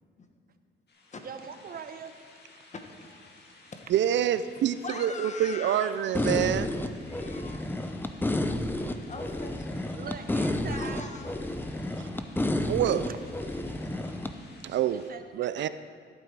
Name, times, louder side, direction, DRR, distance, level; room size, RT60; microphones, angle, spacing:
sound 1, 0.9-15.1, left 2 dB, 55° left, 2.0 m, -55 dB
voice 1, 1.2-2.2 9.9-11.1 13.1-13.3 14.9-15.7, right 6 dB, 50° right, 9 dB, 0.8 m, -42 dB
voice 2, 2.7-3.8 4.5-6.0 7.1-7.7 8.9-9.9 10.7-11.3, left 4 dB, 35° left, 5 dB, 1.4 m, -42 dB
voice 3, 3.9-6.7 12.0-12.1 12.6-13.1 14.6-15.0 15.3-15.7, right 10 dB, 65° right, 13 dB, 0.4 m, -26 dB
sound 2, 6.1-14.3, left 1 dB, 10° left, 0.7 m, -31 dB
14.0 x 8.6 x 4.7 m, 2.1 s
cardioid pair, 90°, 20 cm